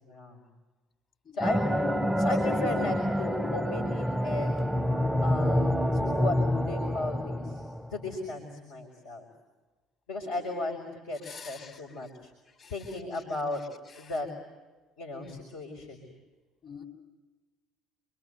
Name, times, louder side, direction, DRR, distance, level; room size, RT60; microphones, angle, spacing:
voice 1, 0.0-0.4 1.3-1.7 2.2-4.6 5.2-7.6 7.9-9.2 10.1-12.3 12.7-13.6 13.9-14.3 15.0-16.1, left 2 dB, 75° left, -1 dB, 4.9 m, -35 dB
sound 1, 1.4-8.2, equal, ahead, 0.8 m, -27 dB
voice 2, 10.2-10.6 11.1-12.1 12.5-14.2 15.2-15.4 16.6-16.8, left 6 dB, 45° left, 3 dB, 5.8 m, -50 dB
28.0 x 24.5 x 8.0 m, 1.3 s
hypercardioid pair, 60°, 0 cm